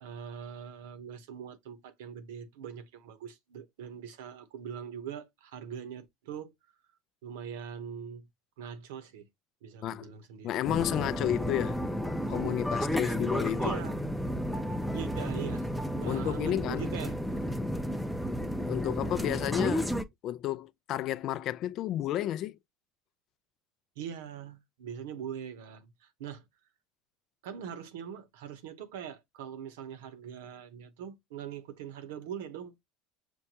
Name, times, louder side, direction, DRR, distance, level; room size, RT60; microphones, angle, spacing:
voice 1, 0.0-6.5 7.2-8.3 8.6-9.3 9.6-10.5 13.6-14.0 14.9-15.7 16.0-17.4 24.0-26.4 27.4-32.8, right 8 dB, 80° right, 0.8 m, -42 dB
voice 2, 10.4-11.8 12.3-13.7 16.0-16.9 18.7-19.9 20.2-22.6, left 12 dB, 55° left, 0.3 m, -31 dB
sound 1, 10.6-20.0, equal, ahead, 0.5 m, -32 dB
6.2 x 2.2 x 2.8 m
supercardioid pair, 100°, 0 cm